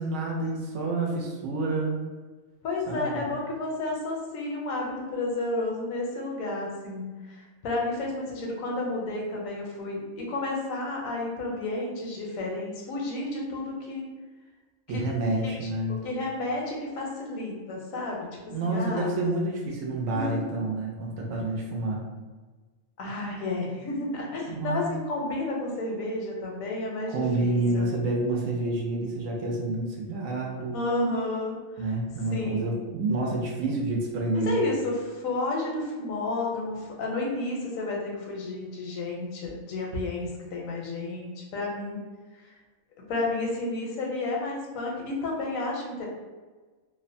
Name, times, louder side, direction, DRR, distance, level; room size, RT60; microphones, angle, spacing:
voice 1, 0.0-2.0 2.9-3.2 14.9-16.0 18.5-22.0 24.5-24.9 27.1-30.7 31.8-34.6, right 2 dB, 80° right, -1 dB, 1.0 m, -28 dB
voice 2, 2.6-14.1 14.9-15.0 15.4-15.5 16.0-18.3 18.6-19.1 20.1-20.4 23.0-27.9 30.7-31.6 32.3-32.7 34.3-42.0 43.1-46.1, left 2 dB, 80° left, -1 dB, 1.0 m, -31 dB
2.7 x 2.1 x 2.5 m, 1.3 s
omnidirectional pair, 1.4 m